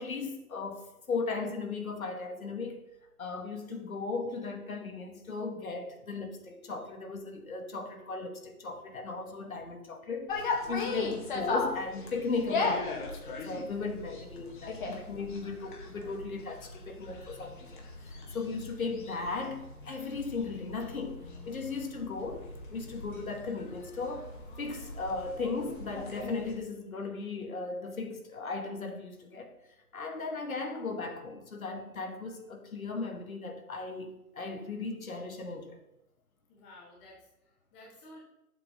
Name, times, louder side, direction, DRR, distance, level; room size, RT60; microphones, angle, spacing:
voice 1, 0.0-2.8 3.2-22.4 22.7-24.3 24.6-29.5 29.9-35.8, left 4 dB, 65° left, 2.2 m, -37 dB
sound 1, 10.3-26.5, left 3 dB, 35° left, 2.0 m, -38 dB
voice 2, 36.5-38.2, left 1 dB, 10° left, 0.8 m, -53 dB
11.0 x 7.6 x 5.2 m
figure-of-eight pair, 150°, 46 cm